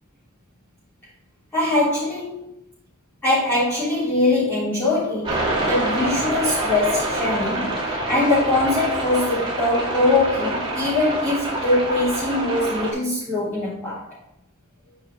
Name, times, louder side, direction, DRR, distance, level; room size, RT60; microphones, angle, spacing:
voice 1, 1.5-2.5 3.2-14.1, left 2 dB, 10° left, -14 dB, 3.7 m, -22 dB
sound 1, 5.2-12.9, right 1 dB, 25° right, 2.3 m, -26 dB
9.9 x 5.8 x 3.9 m, 0.79 s
head